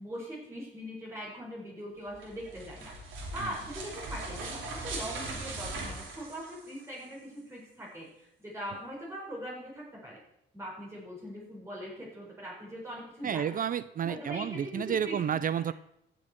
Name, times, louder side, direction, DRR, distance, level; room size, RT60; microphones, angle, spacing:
voice 1, 0.0-2.9 3.3-10.2 10.5-13.5 14.0-15.2, equal, 15° right, -5 dB, 4.8 m, -41 dB
sound 1, 2.1-7.0, right 2 dB, 80° right, 3.2 m, -40 dB
voice 2, 13.2-15.7, right 8 dB, 45° right, 16 dB, 0.5 m, -30 dB
16.0 x 6.6 x 4.5 m, 0.79 s
cardioid pair, 90°, 20 cm